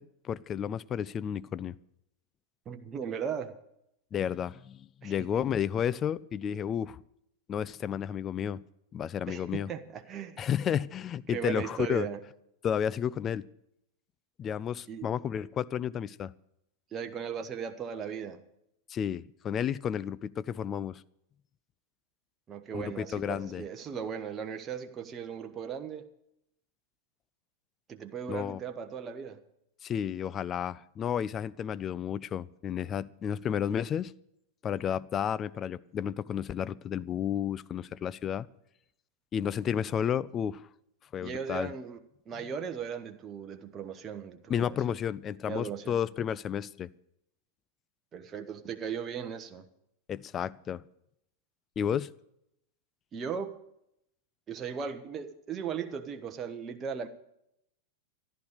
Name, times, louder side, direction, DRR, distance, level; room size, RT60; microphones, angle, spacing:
voice 1, 0.0-1.8 4.1-7.0 7.5-8.6 8.9-9.7 10.4-12.1 12.6-13.5 14.4-16.3 18.9-21.0 22.7-23.6 28.3-28.6 29.8-34.1 34.6-38.5 39.3-40.6 41.1-41.7 44.5-46.9 50.1-50.8 51.8-52.1, left 9 dB, 25° left, 18 dB, 0.5 m, -32 dB
voice 2, 2.7-3.6 5.0-5.4 9.3-10.4 11.3-12.2 14.9-15.1 16.9-18.4 22.5-26.1 27.9-29.4 41.2-42.0 42.3-44.8 45.4-46.0 48.1-49.7 53.1-53.6 54.5-57.1, right 7 dB, 25° right, 7 dB, 1.1 m, -37 dB
14.5 x 11.5 x 6.6 m, 0.78 s
figure-of-eight pair, 90°, 0 cm